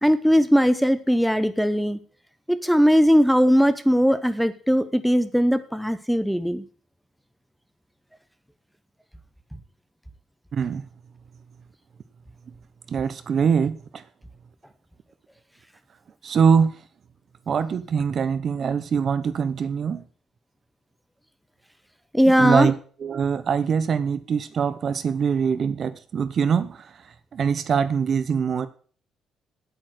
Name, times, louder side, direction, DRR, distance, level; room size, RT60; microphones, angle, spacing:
voice 1, 0.0-2.0 2.5-6.6 22.1-22.7, equal, ahead, 11 dB, 0.7 m, -19 dB
voice 2, 10.5-10.8 12.9-14.0 16.2-16.7 17.5-20.0 22.2-22.7 23.0-26.9 27.3-28.7, right 6 dB, 40° right, 13 dB, 0.8 m, -23 dB
8.9 x 8.8 x 7.8 m, 0.44 s
cardioid pair, 155°, 0 cm